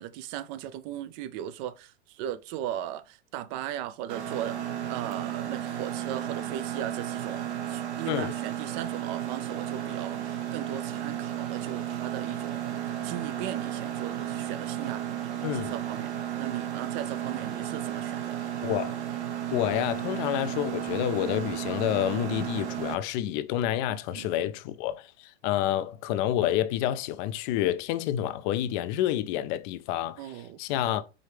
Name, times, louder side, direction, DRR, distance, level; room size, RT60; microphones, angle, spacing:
voice 1, 0.0-18.5 23.9-24.3 30.2-30.6, right 11 dB, 45° right, 0.5 m, -38 dB
Mechanisms, 4.1-22.9, right 10 dB, 75° right, 1.1 m, -33 dB
voice 2, 15.4-15.7 18.6-19.0 19.5-30.2 30.6-31.0, left 12 dB, 45° left, 0.5 m, -28 dB
4.9 x 2.8 x 3.3 m
hypercardioid pair, 110°, 34 cm